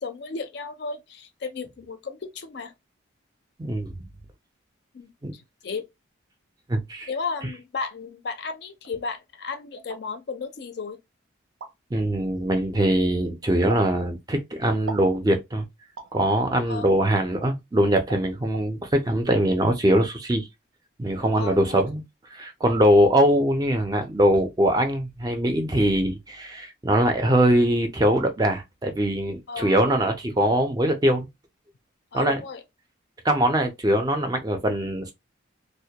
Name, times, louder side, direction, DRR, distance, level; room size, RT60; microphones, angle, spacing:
voice 1, 0.0-2.7 4.9-5.9 7.1-11.0 16.7-16.9 21.4-21.8 29.5-29.8 32.1-32.6, left 4 dB, 55° left, 0.4 m, -34 dB
voice 2, 3.6-3.9 5.2-5.3 6.7-7.1 11.9-15.7 16.1-20.5 21.0-22.0 22.3-31.3 32.1-32.4 33.2-35.1, right 1 dB, 20° right, 0.4 m, -22 dB
sound 1, 7.5-8.0 8.8-8.9 9.8-10.0 11.6-11.7 13.7-13.9 14.9-15.1 16.0-16.2 17.4-17.5 18.1-18.2 18.5-18.7, right 5 dB, 85° right, 0.6 m, -37 dB
2.1 x 2.1 x 2.8 m
head